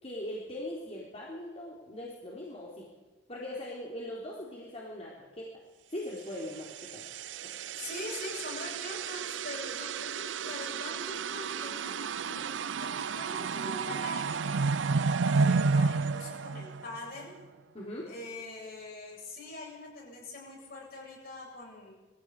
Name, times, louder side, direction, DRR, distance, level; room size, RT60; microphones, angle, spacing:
voice 1, 0.0-2.9 3.3-5.5 5.9-7.1 7.4-7.5 17.7-18.1, left 1 dB, 35° left, -4 dB, 3.8 m, -40 dB
sound 1, 6.6-17.2, right 4 dB, 90° right, 0.6 m, -31 dB
voice 2, 7.7-17.3 18.1-22.0, left 2 dB, 55° left, -1 dB, 7.9 m, -43 dB
21.5 x 16.0 x 8.4 m, 1.2 s
head